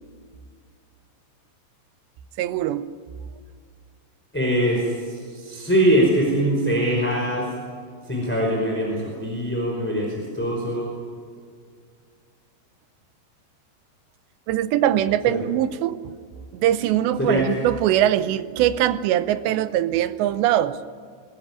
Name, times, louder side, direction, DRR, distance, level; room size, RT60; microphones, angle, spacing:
voice 1, 2.4-2.9 14.5-16.0 16.5-20.8, right 12 dB, 80° right, 3.1 m, -22 dB
voice 2, 4.3-7.5 8.0-10.9 15.3-15.4 17.2-17.6, equal, 5° left, 4.4 m, -22 dB
23.0 x 20.5 x 9.9 m
omnidirectional pair, 5.0 m